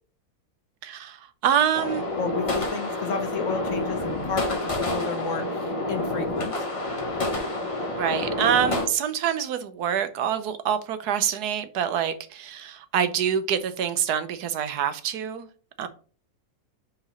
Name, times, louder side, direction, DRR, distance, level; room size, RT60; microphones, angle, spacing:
voice 1, 0.8-2.1 8.0-15.5 15.8-15.9, right 8 dB, 85° right, 1.3 m, -26 dB
sound 1, 1.7-8.9, left 2 dB, 25° left, 0.9 m, -28 dB
voice 2, 2.2-6.7, left 5 dB, 60° left, 1.1 m, -32 dB
4.9 x 3.9 x 5.5 m
omnidirectional pair, 1.6 m